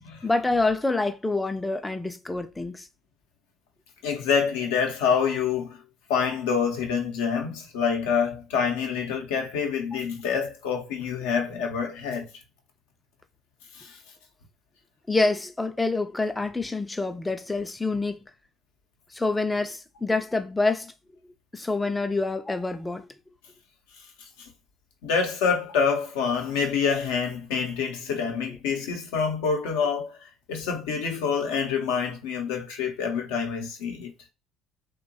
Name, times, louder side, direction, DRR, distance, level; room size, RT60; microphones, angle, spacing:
voice 1, 0.2-2.9 15.1-18.2 19.1-20.9 21.5-23.1, left 3 dB, 15° left, 0.3 m, -26 dB
voice 2, 4.0-5.8 6.1-12.3 13.7-14.0 25.0-30.2 30.5-34.1, left 6 dB, 70° left, 0.6 m, -26 dB
2.9 x 2.2 x 2.6 m
figure-of-eight pair, 55°, 0 cm